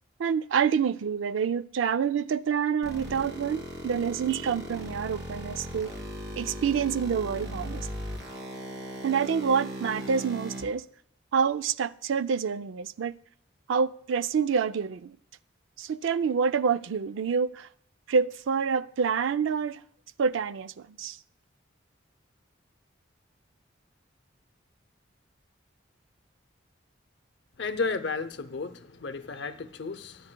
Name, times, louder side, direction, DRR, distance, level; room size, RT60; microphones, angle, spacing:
voice 1, 0.2-5.9 6.4-7.9 9.0-10.8 11.3-13.1 13.7-15.2 15.8-17.7 18.1-19.8 20.2-21.2, right 6 dB, 80° right, 0.4 m, -27 dB
sound 1, 2.8-10.6, equal, 60° right, 3.5 m, -38 dB
voice 2, 27.6-28.7 29.0-30.2, left 4 dB, 60° left, 0.6 m, -32 dB
23.0 x 9.5 x 2.2 m
head